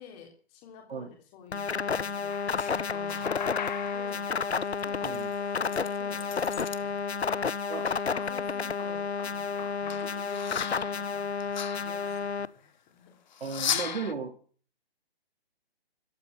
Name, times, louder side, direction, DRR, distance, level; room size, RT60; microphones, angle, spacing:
voice 1, 0.0-4.6 4.8-5.2 5.6-7.4 8.3-13.2, left 6 dB, 20° left, 2 dB, 3.2 m, -51 dB
sound 1, 1.5-12.5, left 5 dB, 85° left, 1.1 m, -31 dB
sound 2, 2.3-6.8 7.1-8.4 8.8-12.4 13.3-14.1, left 8 dB, 45° left, 1.5 m, -38 dB
voice 2, 13.4-14.3, right 5 dB, 70° right, 2 dB, 3.8 m, -35 dB
13.5 x 12.5 x 7.3 m, 0.42 s
figure-of-eight pair, 150°, 32 cm